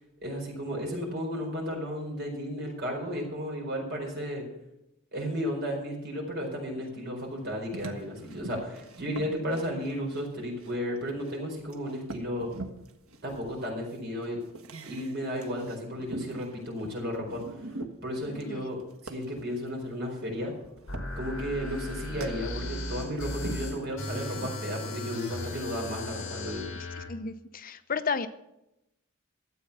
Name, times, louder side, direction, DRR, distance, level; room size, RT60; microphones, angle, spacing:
voice 1, 0.2-4.4 5.1-12.5 13.2-14.4 14.8-17.4 18.0-18.8 19.0-20.5 21.2-26.6, equal, 50° right, -1 dB, 4.5 m, -33 dB
sound 1, 7.2-11.3 11.7-19.5 20.5-22.5 23.0-24.6, right 2 dB, 85° right, 1.3 m, -43 dB
sound 2, 20.9-27.1, left 1 dB, 60° left, 3.2 m, -37 dB
voice 2, 27.0-28.3, left 5 dB, 40° left, 11 dB, 0.6 m, -33 dB
13.0 x 8.2 x 6.7 m, 0.88 s
head